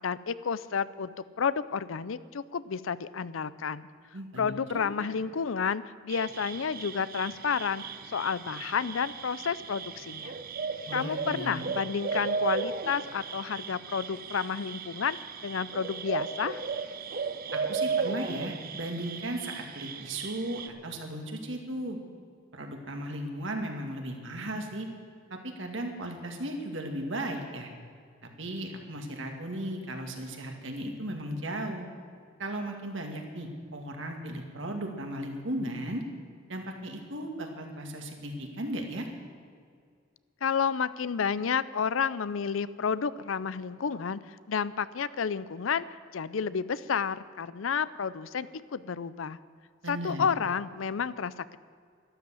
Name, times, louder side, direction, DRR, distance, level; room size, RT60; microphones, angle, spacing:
voice 1, 0.0-3.9 4.4-10.4 10.9-15.2 15.4-16.6 40.4-45.8 46.1-49.4 49.9-51.6, left 6 dB, 80° left, 17 dB, 0.5 m, -31 dB
voice 2, 4.1-4.8 10.9-11.6 17.5-22.0 22.5-24.9 25.3-27.7 28.2-31.9 32.4-36.0 36.5-39.1 49.8-50.3, right 1 dB, 70° right, 3 dB, 2.2 m, -36 dB
sound 1, 6.1-20.7, right 5 dB, 50° right, 0.8 m, -35 dB
12.5 x 12.5 x 7.7 m, 2.1 s
head